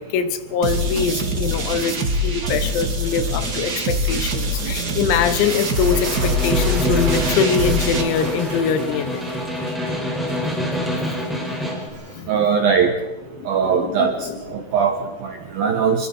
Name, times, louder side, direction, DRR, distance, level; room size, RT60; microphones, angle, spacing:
voice 1, 0.0-9.2 11.2-11.3 11.9-12.3 13.3-14.7, left 6 dB, 85° left, 10 dB, 4.2 m, -24 dB
sound 1, 0.6-8.0, equal, 50° right, 1.1 m, -23 dB
sound 2, 5.4-12.2, right 2 dB, 30° right, 3.9 m, -36 dB
Snare drum, 5.7-11.9, left 1 dB, ahead, 5.0 m, -26 dB
voice 2, 12.3-12.9 13.5-14.2 14.7-16.1, right 6 dB, 70° right, 5 dB, 2.2 m, -20 dB
27.5 x 24.0 x 4.6 m, 1.1 s
omnidirectional pair, 6.0 m